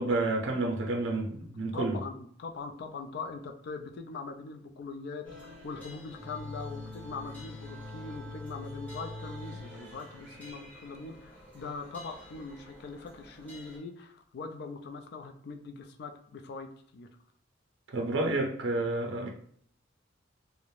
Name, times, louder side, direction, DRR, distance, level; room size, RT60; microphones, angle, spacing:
voice 1, 0.0-2.0 17.9-19.3, right 2 dB, 70° right, 1 dB, 0.5 m, -30 dB
voice 2, 1.7-17.1, left 4 dB, 55° left, 5 dB, 0.3 m, -42 dB
sound 1, 5.2-13.8, left 2 dB, 10° left, 0.6 m, -45 dB
2.4 x 2.1 x 3.1 m, 0.63 s
head